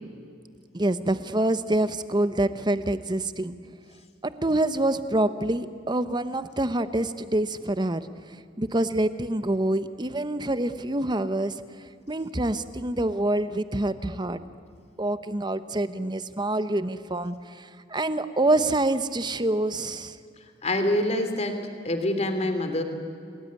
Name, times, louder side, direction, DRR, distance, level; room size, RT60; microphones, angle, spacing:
voice 1, 0.7-3.5 4.2-8.1 8.6-11.5 12.1-14.4 15.0-20.2, right 1 dB, 25° right, 12 dB, 1.0 m, -26 dB
voice 2, 20.6-22.8, left 1 dB, 35° left, 6 dB, 3.0 m, -26 dB
30.0 x 19.5 x 9.6 m, 2.4 s
head